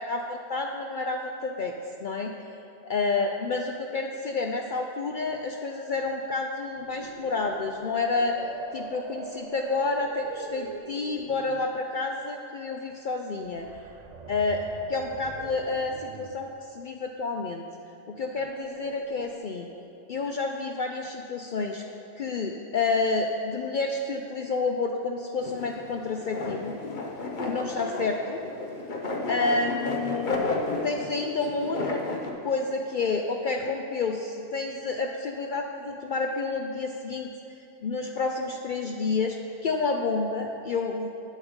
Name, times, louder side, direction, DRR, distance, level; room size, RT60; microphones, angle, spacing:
voice 1, 0.0-2.3 2.9-8.4 8.7-13.7 14.3-14.6 14.9-17.6 18.1-19.7 20.1-21.8 22.2-26.8 27.4-28.4 29.3-30.4 30.8-32.0 32.4-37.3 37.8-39.4 39.6-41.1, left 3 dB, 70° left, 2 dB, 0.4 m, -29 dB
sound 1, 6.6-11.7 13.4-16.6 18.3-19.4, right 5 dB, 90° right, 0.3 m, -43 dB
waxing surfboard, 25.4-32.3, left 3 dB, 40° left, 0.9 m, -32 dB
8.4 x 7.2 x 5.1 m, 2.8 s
omnidirectional pair, 1.4 m